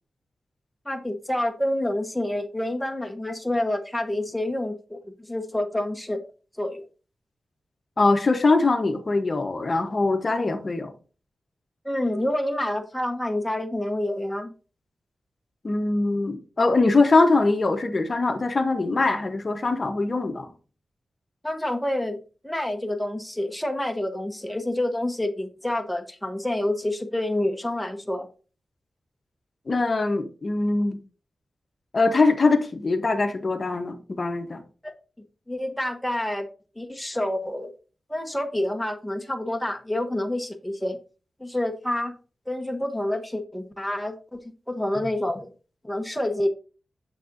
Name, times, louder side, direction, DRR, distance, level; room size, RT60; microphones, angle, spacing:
voice 1, 0.9-6.2 6.6-6.8 11.8-14.5 21.4-28.3 34.8-34.9 35.5-36.5 36.8-37.7 38.1-41.0 41.4-42.1 42.5-45.5 45.8-46.5, left 1 dB, 5° left, 0.9 m, -28 dB
voice 2, 8.0-10.9 15.6-20.5 29.7-31.0 31.9-34.6, left 3 dB, 35° left, 0.9 m, -22 dB
9.0 x 7.1 x 2.6 m
wide cardioid pair, 135°, 0 cm